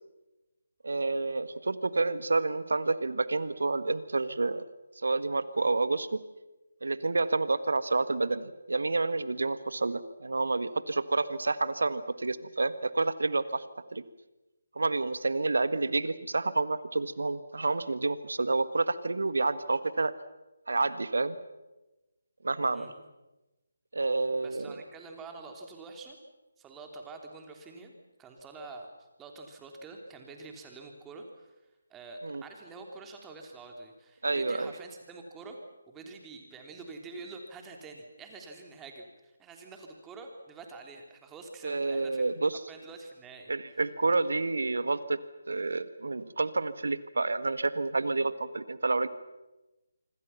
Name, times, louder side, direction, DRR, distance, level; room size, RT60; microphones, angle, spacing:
voice 1, 0.8-4.6 5.0-6.2 6.8-13.6 13.9-14.0 14.7-20.1 20.7-21.4 22.4-22.9 23.9-24.8 32.2-32.4 34.2-34.7 41.6-42.6 43.5-45.2 45.5-49.1, right 3 dB, 70° right, 14 dB, 1.6 m, -29 dB
voice 2, 22.7-23.0 24.4-26.2 26.6-27.9 28.2-31.5 31.9-35.6 35.9-42.3 42.7-43.8 45.7-45.8, right 3 dB, 10° right, 2 dB, 3.2 m, -46 dB
26.0 x 26.0 x 5.9 m, 1.1 s
figure-of-eight pair, 150°, 0 cm